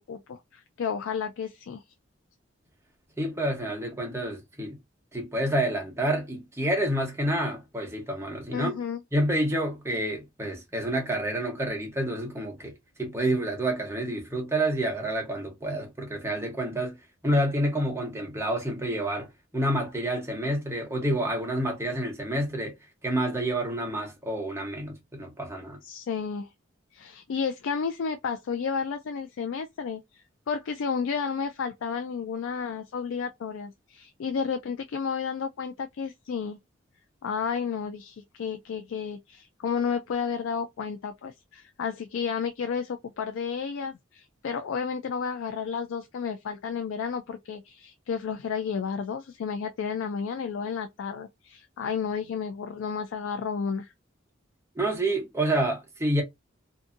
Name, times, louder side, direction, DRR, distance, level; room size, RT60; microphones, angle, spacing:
voice 1, 0.0-1.8 8.5-9.0 25.8-26.5 26.9-36.6 37.2-53.9, left 6 dB, 80° left, 0.3 m, -32 dB
voice 2, 3.2-4.8 5.1-8.7 9.1-12.7 13.0-16.9 17.2-22.7 23.0-25.8 54.8-56.2, right 1 dB, 15° right, 0.9 m, -28 dB
2.6 x 2.6 x 2.5 m
head